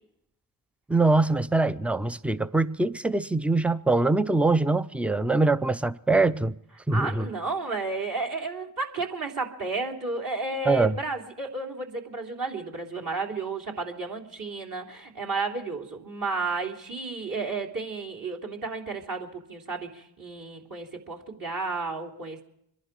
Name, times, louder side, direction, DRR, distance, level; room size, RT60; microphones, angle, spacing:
voice 1, 0.9-6.5 6.9-7.3 10.7-10.9, right 3 dB, 5° right, 0.6 m, -23 dB
voice 2, 6.9-22.4, right 3 dB, 45° right, 3.2 m, -32 dB
26.0 x 11.0 x 4.7 m
hypercardioid pair, 45°, 46 cm